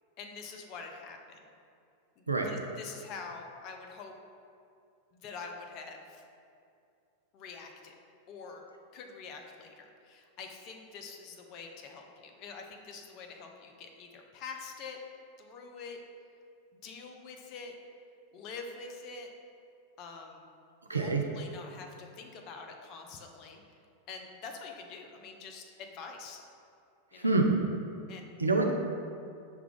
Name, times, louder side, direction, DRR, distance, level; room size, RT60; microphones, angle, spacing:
voice 1, 0.2-1.4 2.2-4.1 5.1-6.2 7.3-7.9 8.3-8.6 8.9-15.0 15.4-16.0 16.8-17.7 18.3-19.3 20.0-20.5 20.9-23.6 24.1-26.4 27.1-27.3 28.1-28.4, left 4 dB, 40° left, 3 dB, 0.5 m, -45 dB
voice 2, 20.9-21.2 27.1-27.6 28.4-28.7, right 3 dB, 80° right, 2 dB, 0.4 m, -26 dB
5.7 x 2.3 x 3.6 m, 2.5 s
figure-of-eight pair, 90°, 0 cm